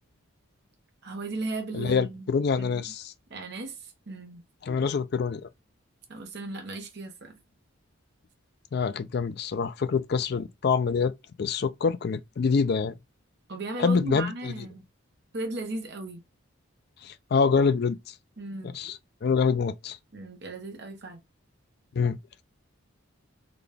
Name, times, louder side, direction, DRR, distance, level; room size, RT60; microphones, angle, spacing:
voice 1, 1.0-2.3 2.6-2.8 3.3-4.4 6.1-7.4 13.5-14.8 15.3-16.2 18.4-18.8 20.1-21.2, right 2 dB, 50° right, 0.8 m, -36 dB
voice 2, 1.7-3.1 4.6-5.5 8.7-13.0 13.8-14.5 17.0-18.1 18.6-20.0 22.0-22.2, left 5 dB, 50° left, 0.3 m, -26 dB
3.9 x 2.3 x 3.3 m
head